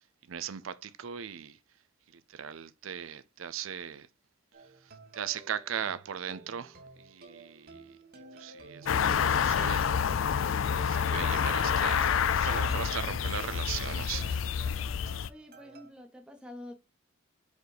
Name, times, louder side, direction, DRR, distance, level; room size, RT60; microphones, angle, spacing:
voice 1, 0.3-1.6 2.1-4.1 5.1-8.0 8.3-10.0 10.8-14.4, right 8 dB, 85° right, 0.5 m, -38 dB
sound 1, 4.5-15.9, right 3 dB, 50° right, 1.3 m, -51 dB
sound 2, 8.9-15.3, left 7 dB, 75° left, 0.4 m, -28 dB
voice 2, 15.3-16.7, left 1 dB, 5° right, 1.1 m, -47 dB
5.2 x 4.0 x 4.8 m
head